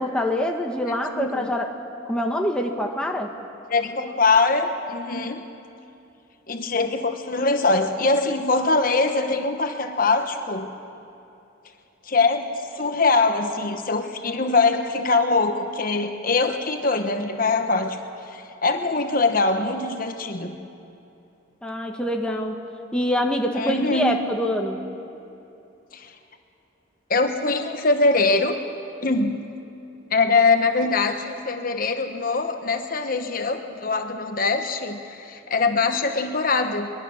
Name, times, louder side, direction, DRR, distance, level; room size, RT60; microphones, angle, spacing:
voice 1, 0.0-1.8 2.1-3.3 21.6-22.6 22.9-24.8, left 1 dB, 5° left, 1 dB, 1.3 m, -25 dB
voice 2, 1.1-1.5 3.7-5.4 6.5-10.7 12.0-18.0 18.3-20.6 23.5-24.3 25.9-26.1 27.1-28.6 29.0-29.5 30.1-36.9, left 3 dB, 45° left, 6 dB, 1.1 m, -22 dB
22.0 x 21.5 x 6.4 m, 2.8 s
head